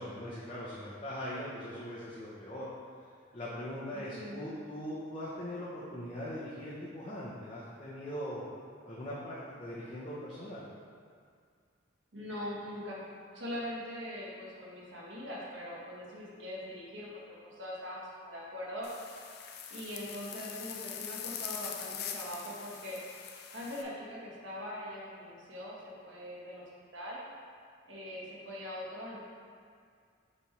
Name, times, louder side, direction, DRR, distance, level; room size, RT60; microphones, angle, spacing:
voice 1, 0.0-2.6 3.3-8.4 8.8-10.6, equal, 30° left, -10 dB, 0.9 m, -41 dB
voice 2, 3.9-4.5 12.1-13.0 13.3-17.1 17.4-18.9 19.7-23.0 23.5-26.6 26.9-27.2 27.8-29.2, left 1 dB, 80° right, -5 dB, 1.5 m, -42 dB
sound 1, 18.8-23.8, left 8 dB, 55° left, 0.5 m, -42 dB
6.8 x 4.4 x 3.2 m, 2.2 s
head